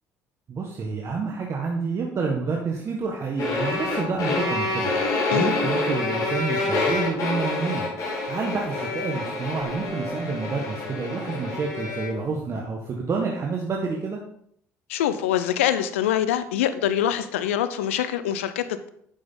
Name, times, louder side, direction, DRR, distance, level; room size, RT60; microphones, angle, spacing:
voice 1, 0.5-4.9 5.3-7.8 8.2-14.2, right 4 dB, 45° right, 0 dB, 1.6 m, -28 dB
sound 1, 3.4-12.2, left 3 dB, 55° left, 3.6 m, -27 dB
voice 2, 14.9-18.9, left 10 dB, 90° left, 12 dB, 0.6 m, -24 dB
9.9 x 7.5 x 3.9 m, 0.67 s
hypercardioid pair, 65°, 7 cm